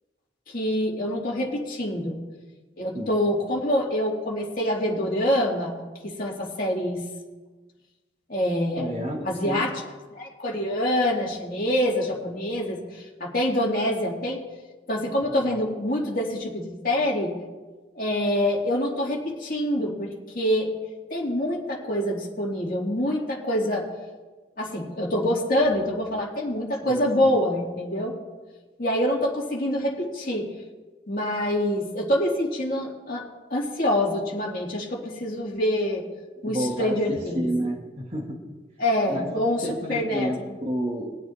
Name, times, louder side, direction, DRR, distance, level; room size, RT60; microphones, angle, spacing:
voice 1, 0.5-2.2 2.8-7.0 8.3-8.9 9.2-9.7 10.1-12.8 13.2-14.4 14.9-17.3 18.0-20.7 21.1-23.9 24.6-28.1 28.8-30.5 31.1-36.0 36.4-37.4 38.8-39.6 39.9-40.3, left 1 dB, 50° left, -5 dB, 2.7 m, -26 dB
voice 2, 8.8-9.6 15.2-15.6 26.8-27.3 36.4-38.4 39.1-40.4 40.7-41.2, right 1 dB, 35° right, -2 dB, 2.3 m, -30 dB
22.5 x 8.4 x 2.9 m, 1.3 s
head